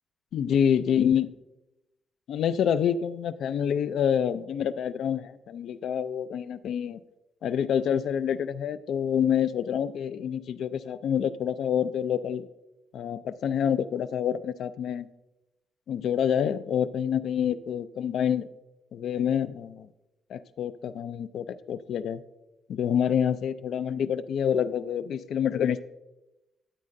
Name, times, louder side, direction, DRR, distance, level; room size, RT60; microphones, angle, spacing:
voice 1, 0.3-1.3 2.3-7.0 7.4-12.5 12.9-15.1 15.9-18.5 18.9-19.9 20.3-22.2 22.7-25.8, left 8 dB, 70° left, 13 dB, 0.3 m, -27 dB
13.5 x 8.4 x 2.6 m, 0.97 s
wide cardioid pair, 170°, 0 cm